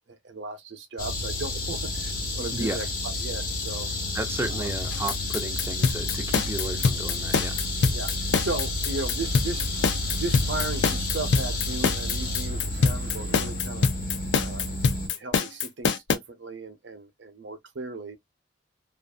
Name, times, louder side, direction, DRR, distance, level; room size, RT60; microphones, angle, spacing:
voice 1, 0.1-2.9 3.2-3.9 4.5-4.7 7.9-8.1 8.4-9.7 10.2-13.9 14.4-14.7 15.2-18.2, right 3 dB, 75° right, 0.7 m, -36 dB
sound 1, 1.0-15.1, left 2 dB, 50° left, 0.9 m, -30 dB
voice 2, 2.5-2.8 4.1-7.6, right 2 dB, 15° right, 0.4 m, -33 dB
sound 2, 4.9-16.2, left 5 dB, 70° left, 0.5 m, -24 dB
sound 3, 9.2-13.6, left 2 dB, 90° left, 0.9 m, -46 dB
2.6 x 2.4 x 2.3 m
head